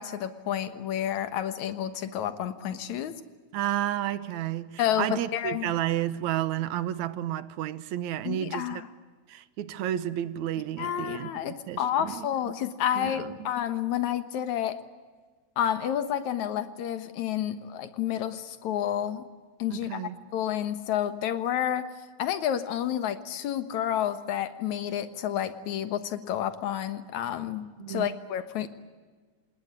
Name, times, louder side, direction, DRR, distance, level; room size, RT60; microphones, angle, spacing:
voice 1, 0.0-3.1 4.8-5.7 8.2-8.9 10.8-14.8 15.6-19.3 19.6-20.0 20.3-21.9 22.2-28.7, left 10 dB, 80° left, 2.7 m, -30 dB
voice 2, 3.5-8.8 9.3-12.3 13.0-13.5 19.7-20.2 27.8-28.1, right 12 dB, 80° right, 2.3 m, -31 dB
27.5 x 20.0 x 9.5 m
omnidirectional pair, 3.3 m